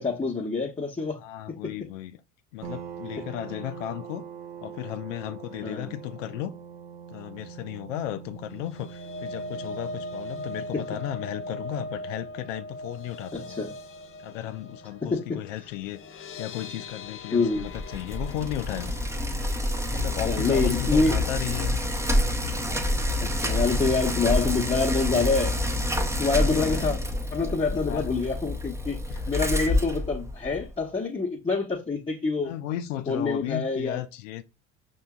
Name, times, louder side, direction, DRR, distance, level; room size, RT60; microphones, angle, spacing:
voice 1, 0.0-1.2 1.5-1.7 5.6-5.9 10.7-10.8 13.3-13.7 15.0-15.4 17.3-17.7 20.2-21.2 23.2-25.6 26.2-27.0 27.3-29.0 29.3-32.5 33.1-34.0, left 4 dB, 15° left, 1.0 m, -26 dB
voice 2, 1.2-2.2 2.5-4.3 4.6-6.5 7.1-13.6 14.2-18.9 19.9-21.8 26.4-27.0 27.9-28.1 29.1-29.2 32.4-34.4, left 13 dB, 75° left, 0.5 m, -35 dB
sound 1, 2.6-15.9, right 7 dB, 70° right, 0.8 m, -44 dB
sound 2, 8.4-22.7 23.0-23.3 23.6-23.7, left 1 dB, 35° left, 0.7 m, -41 dB
Bicycle, 17.5-30.7, left 1 dB, 5° right, 0.7 m, -27 dB
5.5 x 3.0 x 2.3 m
hypercardioid pair, 65°, 37 cm